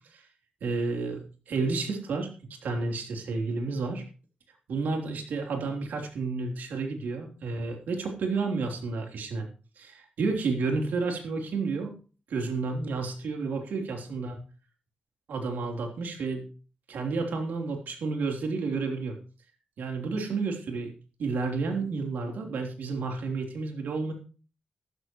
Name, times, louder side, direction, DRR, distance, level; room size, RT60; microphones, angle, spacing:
voice 1, 0.6-2.3 2.6-4.0 4.7-9.5 9.8-11.9 12.3-14.4 15.3-16.4 16.9-19.2 19.8-20.9 21.2-24.1, right 4 dB, 80° right, 3 dB, 3.4 m, -31 dB
14.0 x 13.0 x 3.1 m, 0.37 s
cardioid pair, 65°, 3 cm